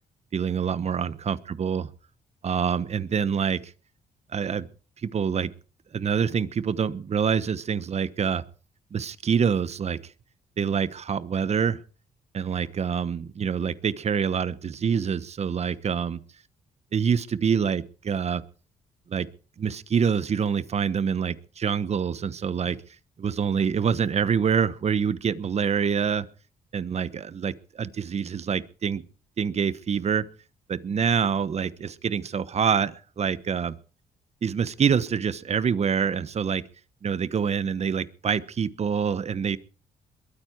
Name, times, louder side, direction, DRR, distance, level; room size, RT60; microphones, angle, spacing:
voice 1, 0.3-1.9 2.4-3.7 4.3-4.7 5.1-5.5 5.9-8.4 8.9-10.0 10.6-11.8 12.3-16.2 16.9-18.4 19.1-19.3 19.6-22.8 23.2-26.3 26.7-29.0 29.4-30.3 30.7-33.7 34.4-36.6 37.0-39.6, right 7 dB, 45° right, 16 dB, 1.1 m, -26 dB
22.5 x 9.4 x 4.6 m, 0.38 s
cardioid pair, 80°, 15 cm